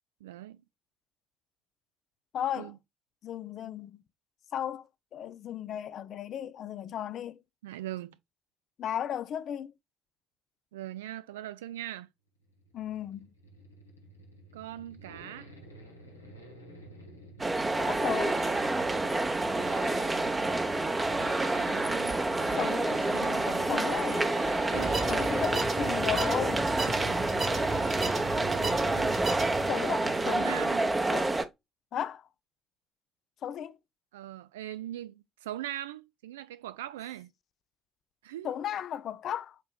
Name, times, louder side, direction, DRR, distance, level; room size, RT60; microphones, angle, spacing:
voice 1, 0.2-0.6 2.6-2.8 7.6-8.2 10.7-12.1 14.5-15.5 21.6-22.2 22.9-23.9 24.7-25.0 26.8-27.3 28.0-29.2 30.2-31.0 34.1-37.3 38.2-38.5, right 13 dB, 75° right, 0.3 m, -41 dB
voice 2, 2.3-2.7 3.2-4.0 4.5-4.9 5.1-7.4 8.8-9.7 12.7-13.3 17.8-18.4 22.5-24.3 25.1-26.7 29.6-30.7 31.1-31.4 31.9-32.3 33.4-33.8 38.4-39.6, left 10 dB, 55° left, 0.4 m, -35 dB
Accelerating revving vroom, 12.4-30.6 30.9-31.0, equal, 90° left, 0.7 m, -47 dB
sound 1, 17.4-31.4, right 2 dB, 25° right, 0.8 m, -28 dB
sound 2, 24.7-29.7, right 3 dB, 45° right, 1.8 m, -35 dB
7.6 x 3.0 x 2.2 m
figure-of-eight pair, 45°, 0 cm